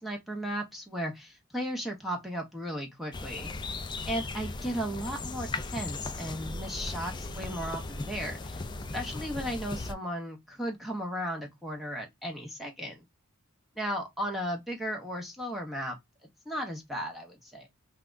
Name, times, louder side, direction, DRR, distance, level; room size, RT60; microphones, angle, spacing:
voice 1, 0.0-3.5 4.1-8.6 8.9-13.0 13.8-16.0 16.5-17.7, equal, ahead, 0.8 m, -35 dB
sound 1, 3.1-9.9, left 3 dB, 20° left, 0.4 m, -37 dB
5.6 x 2.3 x 2.4 m
head